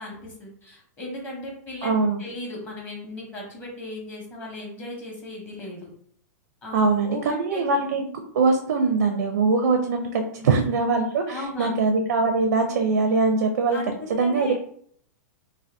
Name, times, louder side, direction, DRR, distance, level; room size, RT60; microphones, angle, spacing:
voice 1, 0.0-1.9 2.2-5.9 6.6-7.7 10.4-10.6 11.3-11.7 13.7-14.5, left 1 dB, 15° left, -2 dB, 0.8 m, -37 dB
voice 2, 1.8-2.2 6.7-8.0 8.3-13.8 14.1-14.5, right 4 dB, 80° right, 5 dB, 0.5 m, -22 dB
2.7 x 2.2 x 3.3 m, 0.63 s
supercardioid pair, 155°, 10 cm